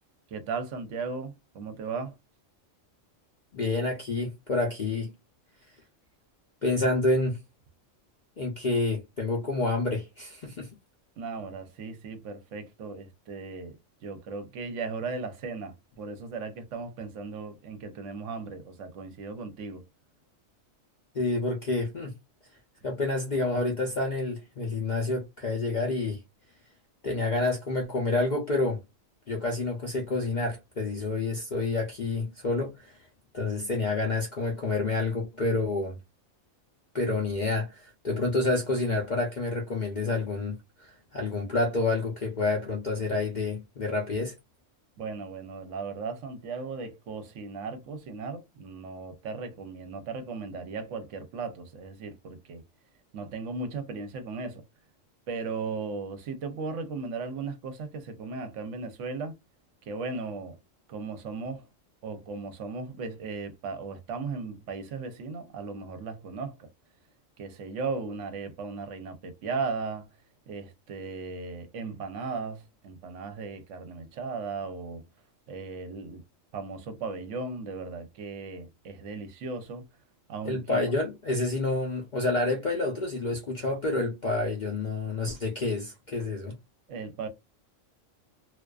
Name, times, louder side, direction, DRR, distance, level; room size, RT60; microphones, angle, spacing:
voice 1, 0.3-2.1 11.2-19.8 45.0-52.6 53.1-54.6 55.3-59.4 59.9-60.6 60.9-61.7 62.0-66.7 67.4-70.1 70.5-75.0 75.5-76.2 76.5-79.8 80.3-80.8 86.9-87.3, right 4 dB, 70° right, 0.9 m, -36 dB
voice 2, 3.5-5.1 6.6-7.4 8.4-10.7 21.1-22.1 22.8-26.2 27.0-28.8 29.3-33.0 33.3-36.0 36.9-44.3 80.4-86.5, left 2 dB, 55° left, 0.5 m, -28 dB
2.3 x 2.3 x 2.3 m
omnidirectional pair, 1.4 m